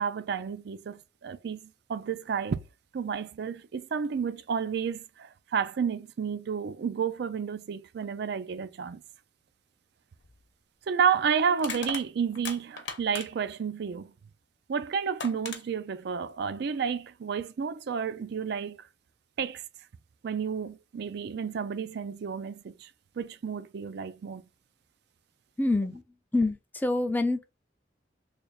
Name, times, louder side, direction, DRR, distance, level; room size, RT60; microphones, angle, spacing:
voice 1, 0.0-2.6 2.9-9.0 10.9-14.1 14.7-18.9 19.4-19.6 20.2-22.9 23.2-24.4, right 6 dB, 65° right, 0.4 m, -31 dB
Crushing, 10.2-10.4 11.6-13.5 14.7-14.8 15.2-15.6, left 5 dB, 80° left, 0.8 m, -38 dB
voice 2, 25.6-26.0 26.3-27.4, left 2 dB, 10° left, 0.4 m, -26 dB
3.3 x 2.3 x 4.0 m
head